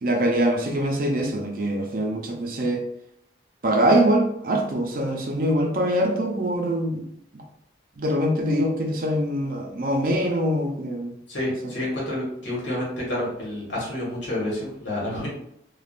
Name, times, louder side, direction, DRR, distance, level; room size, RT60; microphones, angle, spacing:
voice 1, 0.0-2.8 3.6-7.1 7.3-7.4 8.0-11.2, right 1 dB, 50° right, 2 dB, 0.5 m, -23 dB
voice 2, 11.3-15.3, left 1 dB, 75° left, -5 dB, 1.3 m, -29 dB
3.5 x 2.3 x 2.4 m, 0.73 s
head